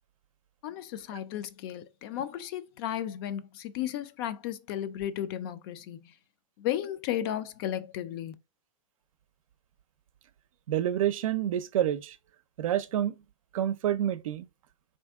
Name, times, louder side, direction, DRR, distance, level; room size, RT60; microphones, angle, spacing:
voice 1, 0.6-6.1 6.6-8.3, left 11 dB, 45° left, 0.5 m, -34 dB
voice 2, 10.7-12.2 12.6-13.1 13.5-14.5, right 11 dB, 75° right, 0.5 m, -28 dB
3.5 x 2.6 x 3.5 m
hypercardioid pair, 140°, 18 cm